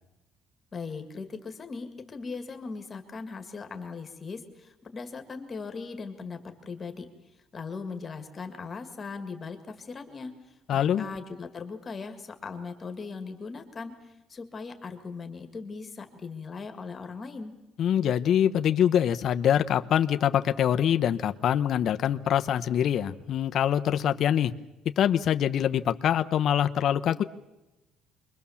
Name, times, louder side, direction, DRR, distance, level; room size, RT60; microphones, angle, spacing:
voice 1, 0.7-7.1 7.5-17.5, left 4 dB, 20° left, 7 dB, 1.9 m, -39 dB
voice 2, 10.7-11.1 17.8-24.5 25.0-27.2, left 9 dB, 40° left, 9 dB, 0.9 m, -24 dB
28.0 x 22.5 x 7.2 m, 1.0 s
cardioid pair, 180°, 0 cm